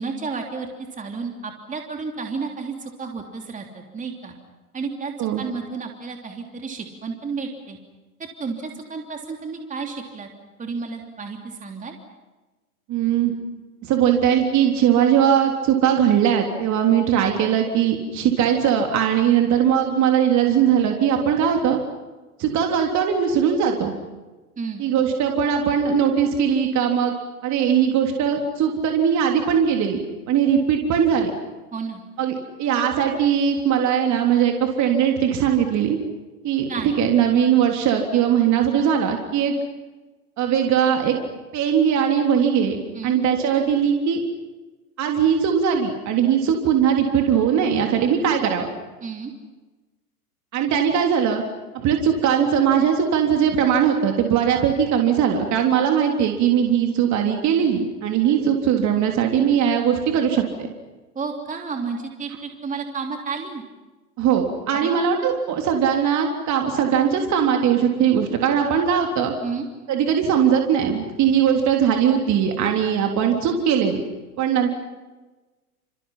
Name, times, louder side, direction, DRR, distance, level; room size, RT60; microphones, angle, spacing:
voice 1, 0.0-4.3 4.7-7.8 8.2-10.3 10.6-11.9 24.6-24.8 31.7-32.0 36.7-36.9 42.9-43.2 49.0-49.3 61.1-63.6 64.7-65.1 69.4-69.7, right 4 dB, 15° right, 3 dB, 3.3 m, -32 dB
voice 2, 12.9-13.3 13.8-21.8 22.4-23.9 24.8-27.1 27.4-30.0 30.3-31.3 32.2-36.0 36.4-39.5 40.4-41.2 41.5-42.8 43.0-44.2 45.0-48.7 50.5-51.4 51.7-60.7 64.2-69.3 69.9-74.0 74.4-74.7, right 8 dB, 40° right, 3 dB, 3.6 m, -20 dB
29.5 x 28.5 x 5.8 m, 1.2 s
hypercardioid pair, 105°, 45 cm